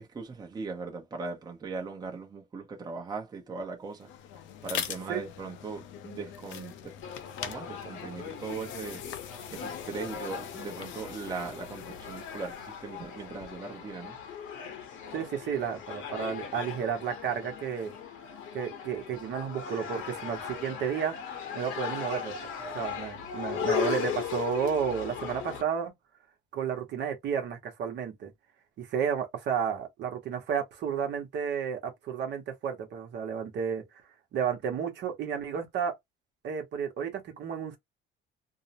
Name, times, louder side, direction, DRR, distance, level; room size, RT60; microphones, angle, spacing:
voice 1, 0.0-4.1 4.6-6.9 7.4-9.0 9.5-14.2, right 4 dB, 20° right, 0.7 m, -39 dB
sound 1, 3.9-13.7, left 9 dB, 65° left, 0.5 m, -43 dB
sound 2, 7.0-25.6, left 7 dB, 85° left, 1.0 m, -38 dB
voice 2, 15.1-17.9 18.5-21.1 21.5-22.3 22.7-25.9 26.5-28.3 28.8-34.0 34.3-35.9 36.4-37.8, right 7 dB, 55° right, 0.9 m, -32 dB
2.6 x 2.0 x 2.8 m
cardioid pair, 140°, 21 cm